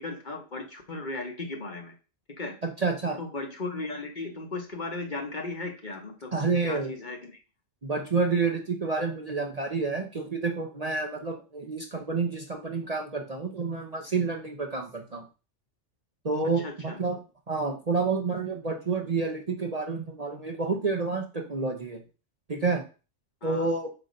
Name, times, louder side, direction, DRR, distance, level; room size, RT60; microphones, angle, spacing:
voice 1, 0.0-1.9 2.4-2.5 3.2-6.3 6.6-7.4 16.6-17.0 23.4-23.7, left 3 dB, 40° left, 4 dB, 1.1 m, -36 dB
voice 2, 2.6-3.2 6.3-7.0 7.8-15.2 16.2-17.2 17.5-22.0 22.5-22.8 23.4-23.9, right 4 dB, 35° right, 2 dB, 0.8 m, -29 dB
7.9 x 2.8 x 5.1 m, 0.33 s
omnidirectional pair, 1.3 m